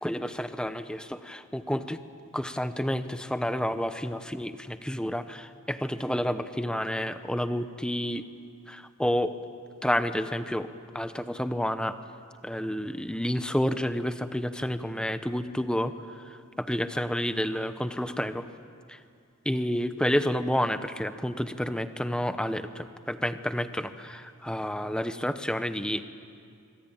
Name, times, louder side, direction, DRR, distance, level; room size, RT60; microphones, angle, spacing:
voice 1, 0.0-2.0 2.3-8.2 8.7-9.3 9.8-10.7 10.9-12.0 12.4-16.2 16.6-18.5 18.9-19.0 19.4-26.0, equal, 5° left, 10 dB, 0.8 m, -30 dB
25.5 x 24.0 x 9.0 m, 2.4 s
head